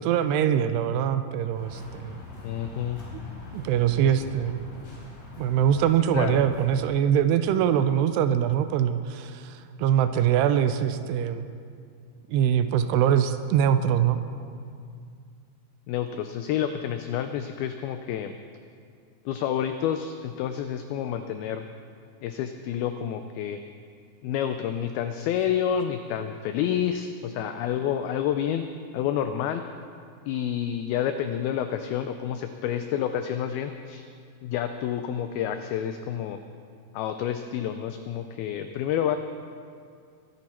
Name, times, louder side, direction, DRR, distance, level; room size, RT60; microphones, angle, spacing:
voice 1, 0.0-2.2 3.5-4.6 5.4-11.5 12.3-14.2, right 9 dB, 80° right, 10 dB, 2.6 m, -23 dB
sound 1, 1.5-6.8, left 2 dB, 50° left, 4.4 m, -43 dB
voice 2, 2.4-3.0 6.1-6.4 15.9-18.3 19.3-21.7 22.2-23.6 24.2-28.6 28.9-29.6 30.3-34.0 34.4-36.4 36.9-39.2, left 9 dB, 85° left, 8 dB, 2.2 m, -29 dB
22.5 x 10.5 x 4.3 m, 2.3 s
omnidirectional pair, 4.9 m